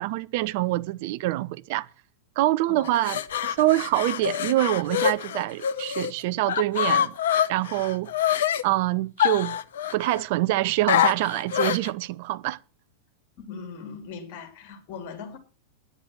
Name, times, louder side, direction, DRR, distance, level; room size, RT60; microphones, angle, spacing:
voice 1, 0.0-1.9 2.4-7.1 7.5-8.1 8.6-9.6 9.9-12.6, right 16 dB, 50° right, 0.6 m, -25 dB
sound 1, 2.9-6.1 6.5-8.6 9.2-10.2 10.9-11.9, left 10 dB, 60° left, 0.7 m, -25 dB
voice 2, 13.4-15.4, left 5 dB, 45° left, 3.1 m, -39 dB
10.0 x 9.6 x 6.2 m
figure-of-eight pair, 90°, 0 cm